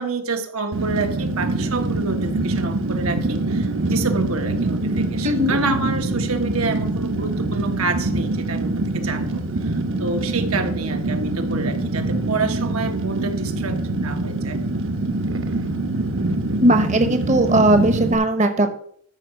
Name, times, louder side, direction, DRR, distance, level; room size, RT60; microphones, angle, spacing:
voice 1, 0.0-14.6, right 3 dB, 85° right, 6 dB, 1.3 m, -28 dB
Fire, 0.7-18.2, right 2 dB, 60° right, 1.0 m, -24 dB
voice 2, 5.2-5.6 16.6-18.8, right 1 dB, 35° right, 8 dB, 0.8 m, -18 dB
13.0 x 4.7 x 5.7 m, 0.63 s
head